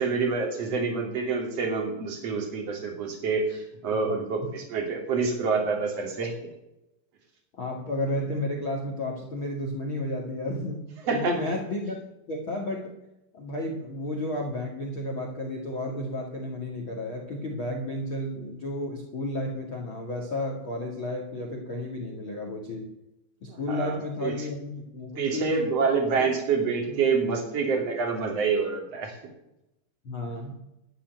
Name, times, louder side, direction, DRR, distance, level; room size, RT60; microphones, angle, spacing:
voice 1, 0.0-6.3 11.0-11.4 23.5-24.5 25.2-29.2, right 5 dB, 35° right, 3 dB, 3.3 m, -27 dB
voice 2, 7.6-10.8 11.1-12.0 12.3-12.9 13.3-22.9 23.4-25.6 26.2-26.3 26.9-27.0 30.0-30.6, left 1 dB, 45° left, 1 dB, 1.6 m, -32 dB
13.0 x 8.9 x 9.2 m, 0.89 s
omnidirectional pair, 5.5 m